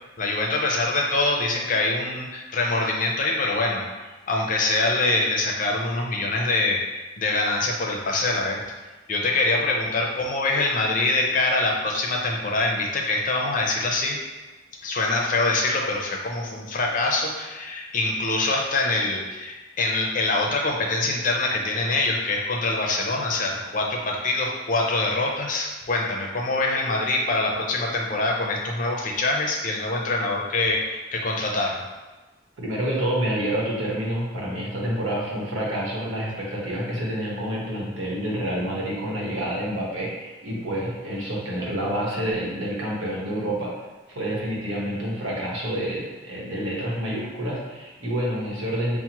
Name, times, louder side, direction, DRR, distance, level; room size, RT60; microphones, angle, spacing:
voice 1, 0.2-3.8 4.3-8.6 9.1-14.2 14.8-31.8, left 2 dB, 40° left, 0 dB, 0.5 m, -24 dB
voice 2, 32.6-43.7 44.1-49.0, right 1 dB, 80° right, -5 dB, 1.1 m, -28 dB
5.7 x 2.1 x 2.9 m, 1.2 s
head